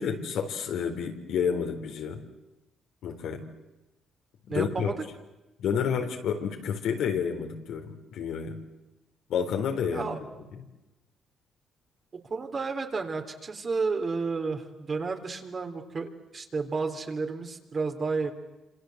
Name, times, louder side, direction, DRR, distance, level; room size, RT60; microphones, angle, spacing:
voice 1, 0.0-2.2 3.0-3.4 4.5-4.9 5.6-8.5 9.3-10.1, left 7 dB, 80° left, 4 dB, 4.0 m, -30 dB
voice 2, 4.5-5.0 9.9-10.2 12.3-18.3, right 4 dB, 40° right, 5 dB, 3.7 m, -31 dB
27.5 x 26.5 x 8.0 m, 1.0 s
cardioid pair, 90°, 0 cm